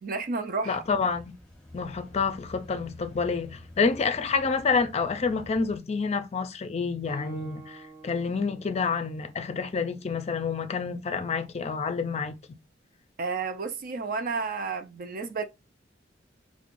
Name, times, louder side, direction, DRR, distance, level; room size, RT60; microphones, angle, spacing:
voice 1, 0.0-0.8 13.2-15.4, right 4 dB, 50° right, 0.5 m, -31 dB
voice 2, 0.7-1.3 1.7-12.6, left 5 dB, 35° left, 0.4 m, -28 dB
sound 1, 0.7-5.8, left 1 dB, 5° left, 0.9 m, -49 dB
Guitar, 7.1-10.7, right 3 dB, 25° right, 1.4 m, -50 dB
4.5 x 2.1 x 2.5 m
head